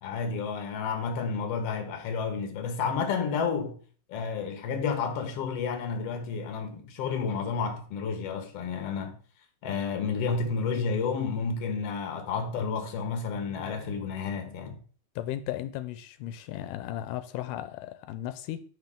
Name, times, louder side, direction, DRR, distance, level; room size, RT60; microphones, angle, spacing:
voice 1, 0.0-3.8 4.1-9.2 9.6-14.8, left 5 dB, 55° left, 2.1 m, -31 dB
voice 2, 15.2-18.6, left 12 dB, 90° left, 2.2 m, -35 dB
9.3 x 5.7 x 3.7 m
omnidirectional pair, 3.7 m